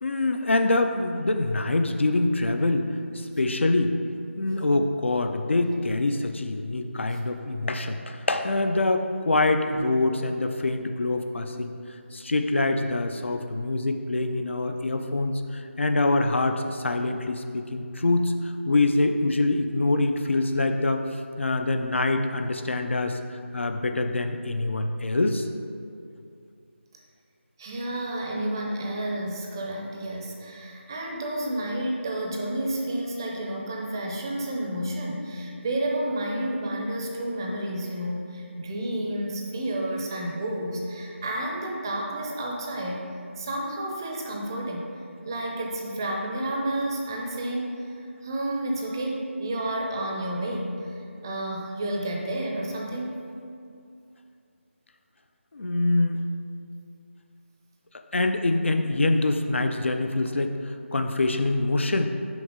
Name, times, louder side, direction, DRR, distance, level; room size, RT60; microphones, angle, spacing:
voice 1, 0.0-4.0 4.4-11.8 12.1-21.1 21.4-25.5 55.5-56.2 58.1-62.1, left 2 dB, 65° left, 6 dB, 0.5 m, -25 dB
voice 2, 27.6-43.1 43.4-53.3, right 1 dB, 20° right, -1 dB, 0.5 m, -31 dB
6.0 x 5.5 x 3.7 m, 2.5 s
figure-of-eight pair, 165°, 7 cm